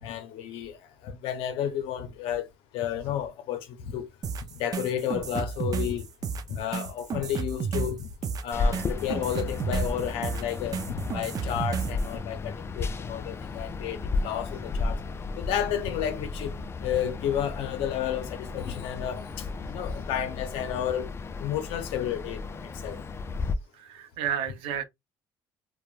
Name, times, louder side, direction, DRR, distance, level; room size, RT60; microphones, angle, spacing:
voice 1, 0.0-0.8 1.0-2.5 2.7-4.0 4.5-6.1 6.5-8.1 8.4-15.0 15.4-21.1 21.4-22.4 22.8-23.0, left 9 dB, 80° left, 0.6 m, -31 dB
sound 1, 4.2-12.1, right 6 dB, 40° right, 0.4 m, -32 dB
sound 2, 8.5-23.5, left 3 dB, 25° left, 0.3 m, -34 dB
voice 2, 23.7-24.8, right 9 dB, 85° right, 0.6 m, -32 dB
3.0 x 2.2 x 2.3 m
supercardioid pair, 85°, 9 cm